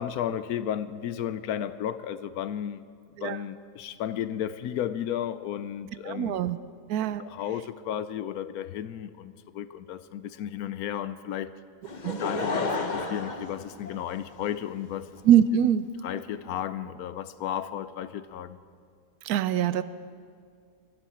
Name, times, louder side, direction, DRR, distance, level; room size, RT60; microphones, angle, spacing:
voice 1, 0.0-2.8 3.2-6.4 7.2-11.5 12.2-15.1 16.0-18.6, left 10 dB, 70° left, 1.0 m, -33 dB
voice 2, 6.1-6.6 6.9-7.2 12.0-12.2 15.2-15.9 19.2-19.8, right 10 dB, 70° right, 1.0 m, -23 dB
Laughter / Crowd, 11.8-14.5 15.2-15.3, left 3 dB, 35° left, 0.9 m, -31 dB
21.0 x 14.5 x 4.3 m
omnidirectional pair, 1.7 m